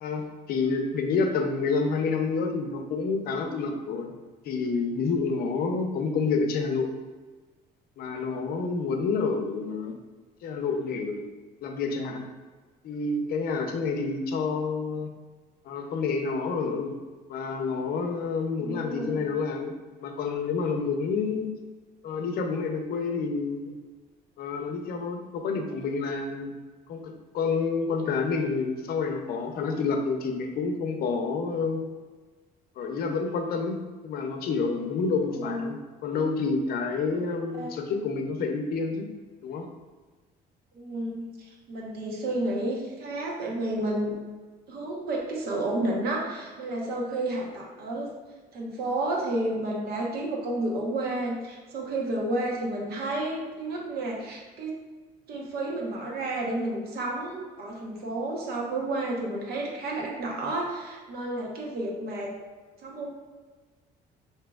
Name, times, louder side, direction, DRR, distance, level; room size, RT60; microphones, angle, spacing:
voice 1, 0.0-4.1 4.4-6.9 8.0-10.0 10.4-11.2 11.6-12.3 12.8-15.1 15.6-17.0 17.3-19.7 20.0-21.5 22.0-23.7 24.4-26.5 26.9-31.8 32.8-39.1 39.4-39.7, left 4 dB, 65° left, 4 dB, 0.6 m, -28 dB
voice 2, 18.6-19.2 35.3-35.7 37.1-37.2 37.6-37.8 40.7-44.1 44.7-48.1 48.5-54.8 55.3-62.3 62.8-63.1, right 1 dB, 65° right, -2 dB, 1.0 m, -31 dB
5.9 x 2.8 x 2.3 m, 1.4 s
cardioid pair, 110°, 17 cm